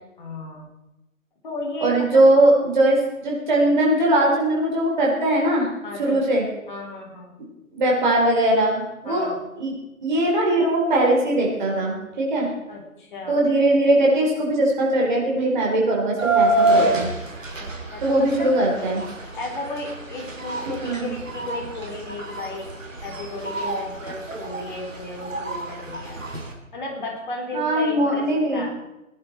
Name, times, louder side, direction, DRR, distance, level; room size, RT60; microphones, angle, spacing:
voice 1, 0.2-0.7 1.4-2.2 5.8-6.3 6.7-7.4 9.0-9.4 12.7-13.4 17.6-18.6 19.3-22.8 23.0-26.2 26.7-28.7, left 2 dB, 35° left, 0 dB, 3.5 m, -34 dB
voice 2, 1.8-5.7 6.0-6.4 7.7-9.3 9.6-9.7 10.0-12.5 13.3-17.1 18.0-19.0 20.7-21.1 27.5-28.7, right 1 dB, 30° right, -2 dB, 4.5 m, -20 dB
sound 1, 16.2-26.5, right 2 dB, 60° right, 3.3 m, -27 dB
19.5 x 11.0 x 4.6 m, 0.96 s
figure-of-eight pair, 150°, 43 cm